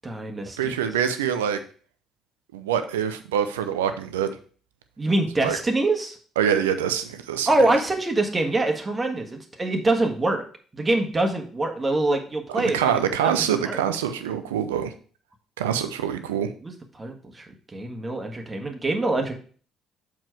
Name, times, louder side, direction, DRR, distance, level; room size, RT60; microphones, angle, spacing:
voice 1, 0.0-0.8 5.0-6.2 7.5-10.4 10.7-12.9 13.2-13.3 13.6-13.8 16.6-19.3, right 2 dB, 25° right, 4 dB, 1.6 m, -24 dB
voice 2, 0.6-1.6 2.5-4.4 5.4-5.6 6.4-7.5 12.6-14.9 15.6-16.5, right 9 dB, 80° right, 10 dB, 0.6 m, -25 dB
7.3 x 4.7 x 4.6 m, 0.42 s
figure-of-eight pair, 50°, 0 cm